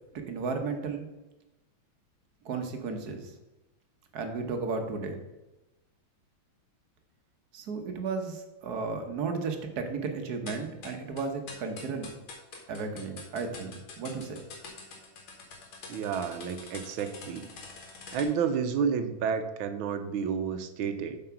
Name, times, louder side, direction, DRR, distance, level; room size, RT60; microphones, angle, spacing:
voice 1, 0.1-1.1 2.4-3.3 4.1-5.2 7.5-12.2 12.7-14.4, right 4 dB, 55° right, 5 dB, 1.4 m, -34 dB
sound 1, 10.5-18.2, left 4 dB, 90° left, 2.3 m, -45 dB
voice 2, 15.9-17.5 18.1-21.2, right 6 dB, 85° right, 9 dB, 1.5 m, -30 dB
7.6 x 4.8 x 5.8 m, 1.0 s
omnidirectional pair, 2.2 m